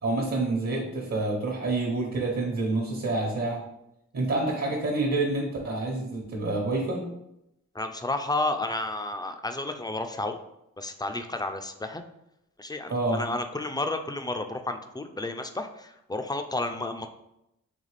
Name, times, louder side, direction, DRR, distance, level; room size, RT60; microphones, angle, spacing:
voice 1, 0.0-3.6 4.1-7.1 12.9-13.2, right 2 dB, 65° right, -1 dB, 1.1 m, -28 dB
voice 2, 7.7-10.4 10.8-12.0 12.6-17.1, left 2 dB, 15° left, 7 dB, 0.3 m, -31 dB
4.0 x 3.2 x 3.2 m, 0.83 s
cardioid pair, 90°, 29 cm